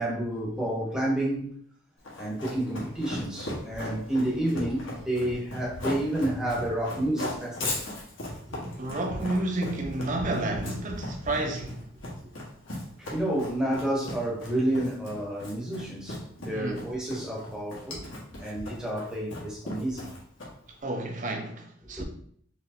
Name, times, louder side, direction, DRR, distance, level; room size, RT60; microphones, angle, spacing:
voice 1, 0.0-1.5 2.2-7.8 8.5-8.6 13.0-18.1 18.4-20.1 22.0-22.1, right 1 dB, 5° right, 0.9 m, -30 dB
Run, 2.0-20.7, left 1 dB, 75° left, 1.2 m, -37 dB
voice 2, 8.8-11.9 16.5-16.8 20.8-22.0, right 2 dB, 40° right, 0.6 m, -31 dB
4.2 x 3.1 x 2.5 m
head